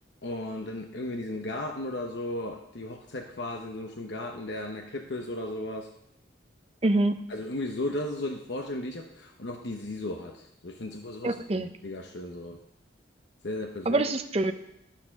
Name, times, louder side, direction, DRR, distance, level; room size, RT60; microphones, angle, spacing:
voice 1, 0.2-5.9 7.3-12.6 13.4-14.0, left 1 dB, 70° left, 2 dB, 0.9 m, -35 dB
voice 2, 6.8-7.1 11.2-11.7 13.9-14.5, right 2 dB, 35° right, 7 dB, 0.7 m, -25 dB
12.0 x 7.3 x 5.9 m, 0.83 s
head